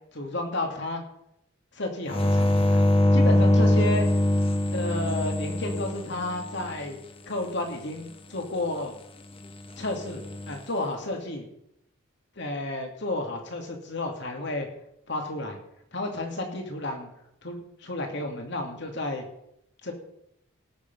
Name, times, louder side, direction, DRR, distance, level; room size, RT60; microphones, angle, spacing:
voice 1, 0.1-1.0 1.7-2.8 3.1-4.1 4.7-7.0 7.3-8.9 9.8-11.4 12.4-14.7 15.1-15.6 15.9-17.1 17.4-19.2 19.8-19.9, left 2 dB, 55° left, 3 dB, 2.6 m, -32 dB
sound 1, 2.1-6.7 10.0-10.5, left 1 dB, 25° left, 1.1 m, -22 dB
18.5 x 7.0 x 5.4 m, 0.77 s
head